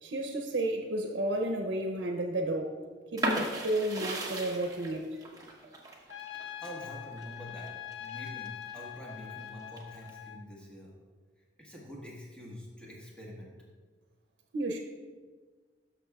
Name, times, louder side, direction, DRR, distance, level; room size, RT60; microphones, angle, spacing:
voice 1, 0.0-2.8 3.1-5.2 14.5-14.8, right 1 dB, 80° right, 3 dB, 0.7 m, -32 dB
sound 1, 3.2-8.8 9.2-10.1, right 1 dB, 20° right, 1.0 m, -36 dB
Trumpet, 6.1-10.4, left 11 dB, 75° left, 0.4 m, -43 dB
voice 2, 6.6-7.7 8.0-10.9 11.6-13.5, equal, 5° left, -4 dB, 1.5 m, -45 dB
13.0 x 6.0 x 2.4 m, 1.4 s
head